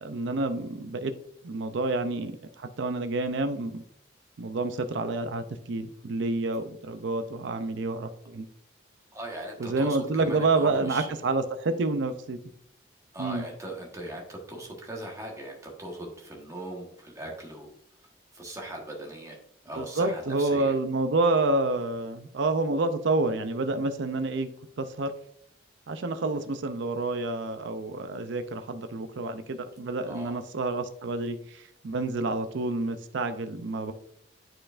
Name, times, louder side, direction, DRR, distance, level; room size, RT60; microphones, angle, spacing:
voice 1, 0.0-1.1 1.4-3.8 4.4-8.5 9.6-12.4 13.2-13.5 19.7-24.5 24.8-25.1 25.9-33.9, right 2 dB, 65° right, 8 dB, 0.5 m, -28 dB
voice 2, 9.1-11.1 13.1-17.7 18.3-19.4 19.6-20.8 30.0-30.3, right 1 dB, 15° right, -1 dB, 1.2 m, -39 dB
9.6 x 4.5 x 2.5 m, 0.69 s
head